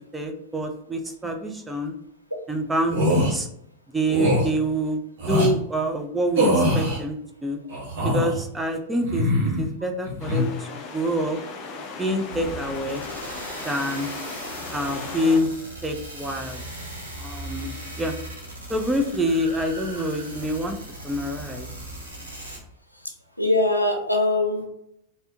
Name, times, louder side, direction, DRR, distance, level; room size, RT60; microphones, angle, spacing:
voice 1, 0.1-2.0 2.5-3.5 3.9-5.0 5.3-7.6 8.0-9.3 9.6-11.4 12.0-13.0 13.6-14.1 14.7-15.5 15.8-16.6 17.2-18.1 18.7-20.8 21.0-21.7, equal, 10° right, 3 dB, 0.5 m, -26 dB
sound 1, 2.9-3.3 4.1-4.5 5.2-5.5 6.4-7.0 7.7-8.4 9.0-9.7 10.0-10.4, equal, 60° right, 1.2 m, -22 dB
sound 2, 10.2-15.4, left 4 dB, 35° left, 0.6 m, -37 dB
sound 3, 12.3-22.6, right 1 dB, 80° right, 0.8 m, -38 dB
voice 2, 23.4-24.7, left 2 dB, 90° left, 3 dB, 0.5 m, -22 dB
3.3 x 2.7 x 2.6 m, 0.75 s
figure-of-eight pair, 90°, 0 cm